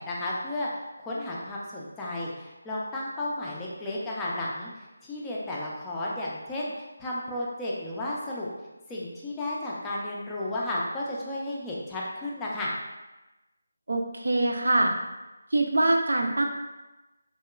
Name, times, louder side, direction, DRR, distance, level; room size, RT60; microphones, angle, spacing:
voice 1, 0.0-4.7 5.0-6.7 7.0-8.5 8.9-12.7, left 1 dB, 10° left, -6 dB, 0.4 m, -33 dB
voice 2, 13.9-14.9 15.5-16.5, right 2 dB, 80° right, 3 dB, 0.4 m, -24 dB
2.8 x 2.3 x 2.2 m, 1.1 s
figure-of-eight pair, 165°, 0 cm